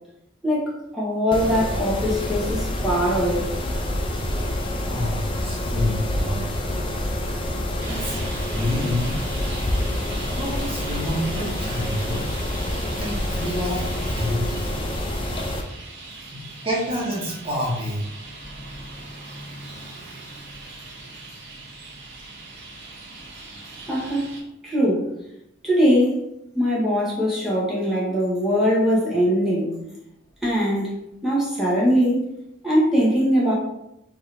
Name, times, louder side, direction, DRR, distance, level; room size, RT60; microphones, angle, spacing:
voice 1, 0.4-3.5 23.9-24.3 24.6-25.1 25.6-26.2 26.5-29.7 30.4-32.2 32.6-33.5, equal, ahead, -7 dB, 1.3 m, -21 dB
Mechanisms, 1.3-15.6, left 1 dB, 25° left, 0.5 m, -27 dB
voice 2, 4.8-6.5 7.9-8.2 8.5-9.2 10.4-12.2 13.0-14.7 16.3-18.0, left 1 dB, 30° right, -5 dB, 1.4 m, -28 dB
Traffic noise roadway noise, 7.8-24.4, right 2 dB, 60° right, 1.1 m, -39 dB
4.5 x 3.0 x 3.5 m, 0.86 s
head